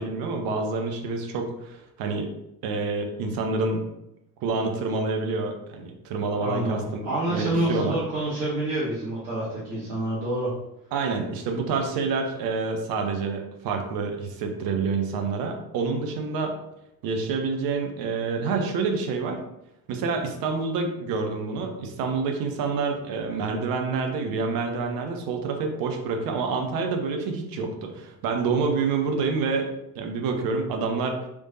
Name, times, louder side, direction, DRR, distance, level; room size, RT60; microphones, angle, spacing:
voice 1, 0.0-2.3 2.6-3.8 4.4-8.0 10.9-16.6 17.0-19.4 19.9-29.7 29.9-31.2, right 4 dB, 45° right, 4 dB, 0.8 m, -27 dB
voice 2, 6.4-10.5, right 1 dB, 75° right, -9 dB, 1.2 m, -27 dB
3.3 x 3.2 x 2.7 m, 0.86 s
figure-of-eight pair, 55°, 50 cm